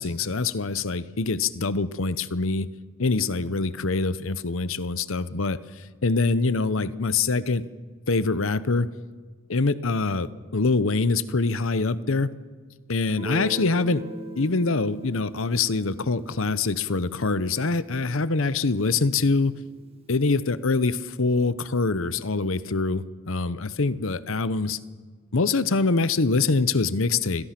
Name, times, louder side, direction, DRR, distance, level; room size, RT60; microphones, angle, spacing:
voice 1, 0.0-2.7 3.0-7.7 8.1-8.9 9.5-12.3 12.9-14.0 14.4-19.6 20.1-24.8 25.3-27.5, left 3 dB, 65° left, 15 dB, 0.8 m, -24 dB
Guitar, 13.1-18.6, right 1 dB, 25° right, 1.8 m, -39 dB
28.5 x 21.5 x 6.0 m, 1.5 s
head